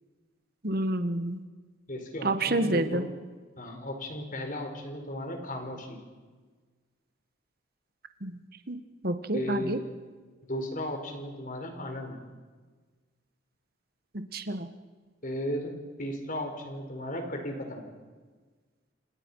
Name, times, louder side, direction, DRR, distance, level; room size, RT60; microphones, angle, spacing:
voice 1, 0.6-1.4 2.2-3.1 8.2-8.4 8.7-8.8 9.0-9.8 14.3-14.7, right 1 dB, 50° right, 9 dB, 1.7 m, -28 dB
voice 2, 1.9-3.1 3.6-6.0 9.3-9.8 10.5-12.2 15.2-15.7 16.0-17.9, left 1 dB, 45° left, 4 dB, 4.8 m, -35 dB
29.0 x 26.5 x 5.7 m, 1.4 s
head